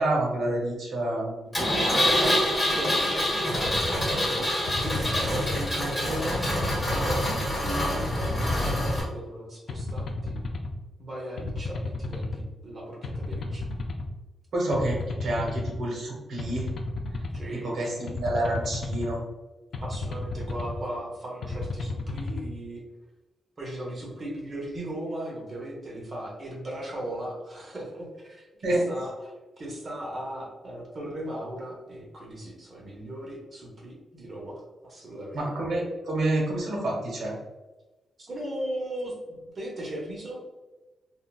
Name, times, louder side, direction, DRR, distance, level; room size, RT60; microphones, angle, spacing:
voice 1, 0.0-1.9 14.5-16.7 17.5-19.2 28.6-28.8 35.3-37.3, right 1 dB, 65° right, -2 dB, 1.1 m, -28 dB
Engine, 1.5-9.0, equal, 15° left, 1.1 m, -26 dB
voice 2, 1.9-6.4 6.9-10.3 11.0-13.7 17.3-17.9 19.7-22.8 23.6-35.4 38.2-40.4, right 1 dB, 40° right, -2 dB, 0.8 m, -37 dB
sound 1, 3.6-4.0 4.7-5.7 6.3-7.4 8.0-9.1 9.7-10.7 11.4-12.4 13.0-14.1 14.7-15.8 16.4-17.4 18.1-19.1 19.7-20.8 21.4-22.4, left 3 dB, 60° left, 0.4 m, -33 dB
3.7 x 2.1 x 2.3 m, 1.1 s
cardioid pair, 115°, 0 cm